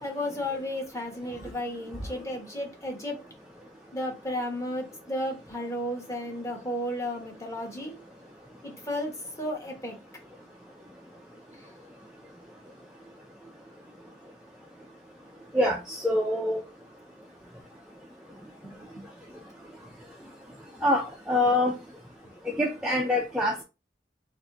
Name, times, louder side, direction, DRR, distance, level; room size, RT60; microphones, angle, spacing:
voice 1, 0.0-3.2 3.9-8.0 8.6-9.1 9.4-10.0 18.6-19.0, left 1 dB, 15° left, 1.1 m, -33 dB
voice 2, 15.5-16.6 20.8-21.7 22.5-23.6, left 1 dB, 5° right, 0.4 m, -25 dB
3.5 x 2.6 x 3.7 m
head